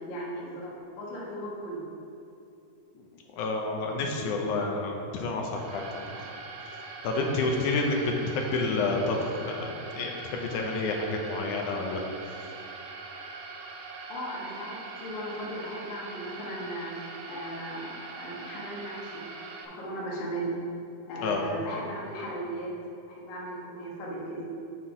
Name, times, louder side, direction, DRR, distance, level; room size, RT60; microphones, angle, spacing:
voice 1, 0.0-1.9 14.1-19.2 19.6-20.6 21.0-22.7 23.0-24.4, right 1 dB, 50° left, -4 dB, 1.6 m, -37 dB
voice 2, 3.3-6.3 7.0-9.2 9.4-9.7 9.9-12.0 21.2-21.4, left 3 dB, 80° left, 1 dB, 2.1 m, -29 dB
sound 1, 5.5-19.6, right 4 dB, 75° right, 2.1 m, -42 dB
6.2 x 5.8 x 4.8 m, 2.8 s
omnidirectional pair, 3.5 m